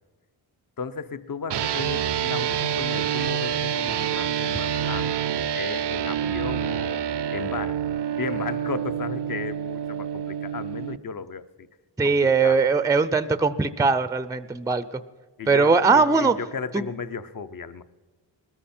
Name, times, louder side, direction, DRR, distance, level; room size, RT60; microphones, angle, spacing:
voice 1, 0.8-7.9 8.2-11.7 12.0-12.7 15.4-17.8, left 5 dB, 45° left, 13 dB, 0.8 m, -35 dB
sound 1, 1.5-11.0, right 9 dB, 60° right, 0.6 m, -27 dB
voice 2, 12.0-15.0 15.5-16.3, right 4 dB, 10° right, 13 dB, 0.5 m, -20 dB
20.0 x 14.0 x 4.3 m, 1.4 s
wide cardioid pair, 85°, 47 cm